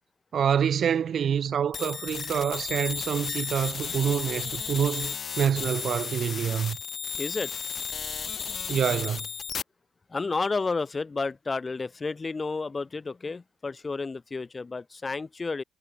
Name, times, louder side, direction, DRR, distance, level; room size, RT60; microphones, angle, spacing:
voice 1, 0.3-6.8 8.7-9.3, right 8 dB, 55° right, 1.2 m, -26 dB
sound 1, 1.7-9.6, left 6 dB, 45° left, 0.7 m, -34 dB
voice 2, 7.2-7.5 10.1-15.6, left 4 dB, 30° left, 2.8 m, -31 dB
cardioid pair, 90°, 0 cm